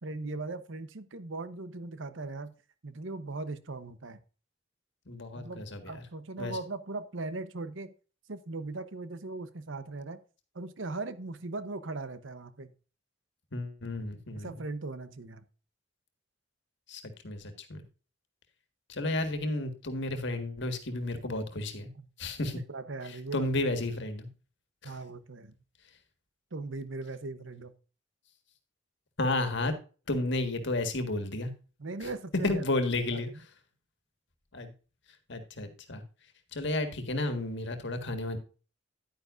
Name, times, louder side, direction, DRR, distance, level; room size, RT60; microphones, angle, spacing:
voice 1, 0.0-2.5 2.8-4.2 5.3-7.9 8.3-10.2 10.5-12.7 14.3-15.4 21.9-22.1 22.7-23.5 24.8-25.5 26.5-27.7 31.8-32.6 33.1-33.2, right 3 dB, 75° right, 13 dB, 0.9 m, -39 dB
voice 2, 5.1-6.0 6.4-6.6 13.5-14.5 16.9-17.8 18.9-21.9 22.2-22.6 23.0-24.3 24.8-24.9 29.2-29.7 30.1-31.5 32.0-32.1 32.4-33.3 34.5-34.7 35.3-36.0 36.5-38.4, left 2 dB, 65° left, 7 dB, 1.7 m, -32 dB
10.5 x 9.5 x 2.6 m, 0.36 s
head